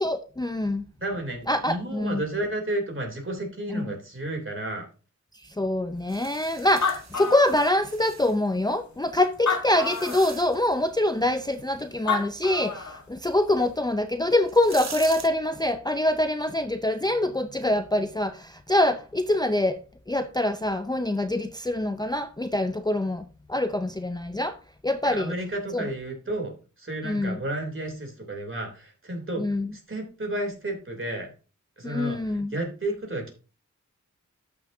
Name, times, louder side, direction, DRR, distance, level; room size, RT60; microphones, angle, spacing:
voice 1, 0.0-0.8 1.5-2.2 3.7-3.9 5.4-23.2 23.5-24.6 24.8-25.3 25.7-25.9 27.0-27.4 29.4-29.7 31.8-32.5, left 1 dB, 15° left, 0.5 m, -25 dB
voice 2, 1.0-4.9 25.0-29.4 29.7-31.3 31.8-33.3, right 1 dB, 40° right, 3.1 m, -32 dB
sound 1, 6.1-8.4 9.1-10.7 13.8-13.9 14.4-15.3, right 6 dB, 60° right, 0.9 m, -42 dB
Animal, 6.4-6.5 6.6-8.1 8.7-8.8 9.3-10.3 11.8-11.9 12.1-13.0, left 5 dB, 70° left, 1.7 m, -29 dB
13.0 x 6.2 x 2.7 m
wide cardioid pair, 85°, 31 cm